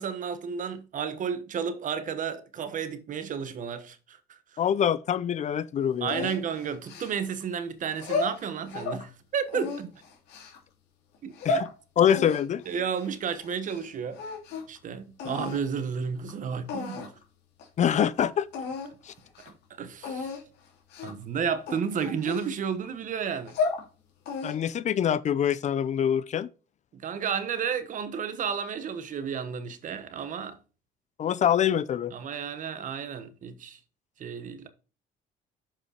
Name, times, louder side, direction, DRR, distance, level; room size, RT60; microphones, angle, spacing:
voice 1, 0.0-4.6 6.0-10.0 11.2-11.6 12.7-14.2 14.7-17.1 19.8-20.3 21.0-23.6 26.9-30.6 32.1-33.8 34.2-34.7, right 7 dB, 50° right, 1.2 m, -32 dB
voice 2, 4.6-6.3 11.4-11.7 12.0-12.6 17.8-18.5 19.1-19.2 24.4-26.5 31.2-32.1, left 9 dB, 45° left, 0.6 m, -25 dB
sound 1, 6.1-7.4 7.9-9.0 9.5-10.6 11.1-11.7 12.1-13.9 14.1-14.8 15.2-15.6 16.3-16.4 16.7-17.2 17.6-17.7 18.0-18.1 18.5-18.9 19.3-19.5 20.0-20.4 20.9-21.2 21.7-22.9 23.3-23.8 24.3-24.8, left 4 dB, 80° left, 2.9 m, -33 dB
7.4 x 5.2 x 5.0 m
cardioid pair, 110°, 17 cm